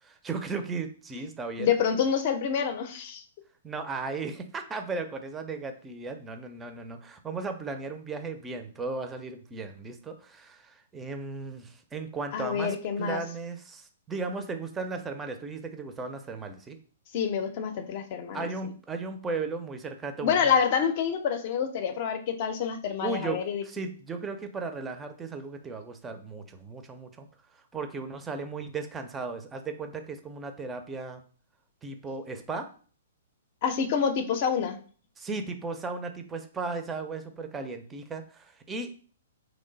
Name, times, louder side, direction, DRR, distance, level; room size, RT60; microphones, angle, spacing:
voice 1, 0.0-1.7 3.6-16.8 18.3-20.5 23.0-27.3 27.7-31.2 31.8-32.7 35.2-39.0, right 4 dB, 15° right, 7 dB, 0.5 m, -36 dB
voice 2, 1.6-3.2 12.3-13.2 17.1-18.5 20.2-23.6 33.6-34.8, left 7 dB, 45° left, 7 dB, 0.6 m, -27 dB
3.1 x 2.1 x 3.9 m, 0.42 s
figure-of-eight pair, 115°, 0 cm